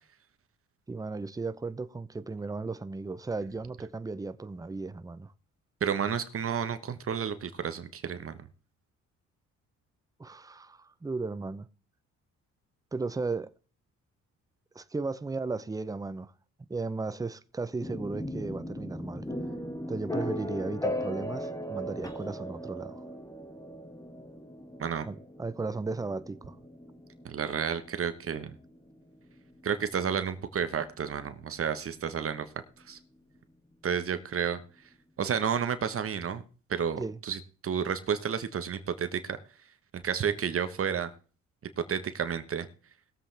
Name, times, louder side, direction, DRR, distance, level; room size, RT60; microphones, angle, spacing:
voice 1, 0.9-5.3 10.2-11.7 12.9-13.5 14.7-16.3 16.7-19.3 19.9-23.0 25.0-26.6 37.0-37.2, right 3 dB, 10° right, 0.6 m, -35 dB
voice 2, 5.8-8.3 24.8-25.1 27.2-28.5 29.6-32.4 32.9-33.0 33.8-34.6 35.2-36.4 36.7-39.4 39.9-41.1 41.9-42.7, right 7 dB, 45° right, 1.1 m, -31 dB
sound 1, 17.8-31.6, equal, 10° left, 1.7 m, -38 dB
20.0 x 7.5 x 3.4 m
cardioid pair, 90°, 30 cm